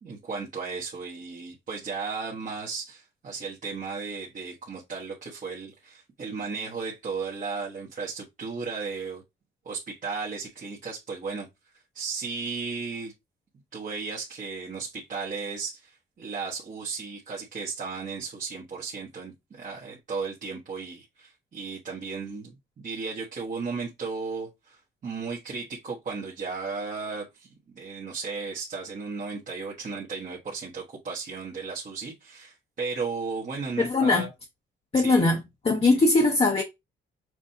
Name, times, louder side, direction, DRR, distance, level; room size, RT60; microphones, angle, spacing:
voice 1, 0.0-9.2 9.6-11.5 11.9-13.1 13.7-34.3 34.9-35.3 35.9-36.0, right 4 dB, 40° right, 1.2 m, -35 dB
voice 2, 33.8-34.3 34.9-36.6, left 3 dB, 30° left, 0.9 m, -21 dB
6.1 x 2.6 x 2.7 m
cardioid pair, 90°, 20 cm